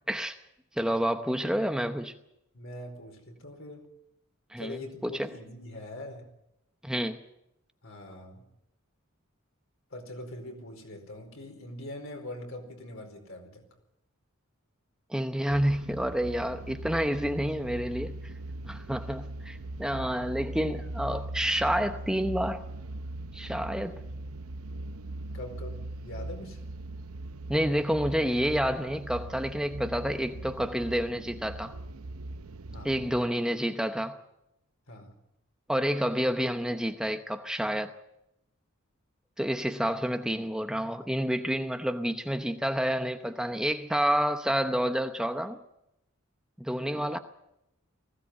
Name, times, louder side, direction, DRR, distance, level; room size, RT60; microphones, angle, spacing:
voice 1, 0.8-2.1 4.5-5.3 6.8-7.2 15.1-18.3 18.7-22.6 23.3-24.0 27.5-31.8 32.8-34.2 35.7-37.9 39.4-45.6 46.6-47.2, equal, 5° right, 0.8 m, -29 dB
voice 2, 2.5-3.9 4.6-6.3 7.8-8.4 9.9-13.6 25.3-26.6 32.7-33.0 34.9-35.2, left 1 dB, 65° left, 4.6 m, -42 dB
sound 1, 15.5-33.2, right 2 dB, 90° right, 0.8 m, -40 dB
20.0 x 16.0 x 8.5 m
head